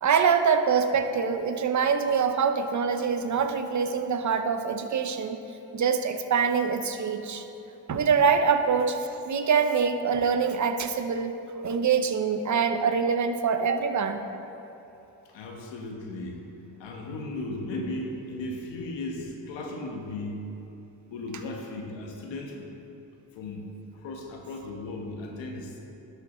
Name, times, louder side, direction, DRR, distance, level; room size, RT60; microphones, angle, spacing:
voice 1, 0.0-5.4 5.7-7.4 7.9-9.0 9.2-11.3 11.6-14.2, right 6 dB, 40° right, 8 dB, 0.7 m, -24 dB
voice 2, 15.2-16.4 16.8-20.5 21.1-22.7 23.3-25.8, left 2 dB, 80° left, 1 dB, 1.2 m, -36 dB
11.5 x 5.7 x 3.1 m, 2.9 s
supercardioid pair, 50°, 44 cm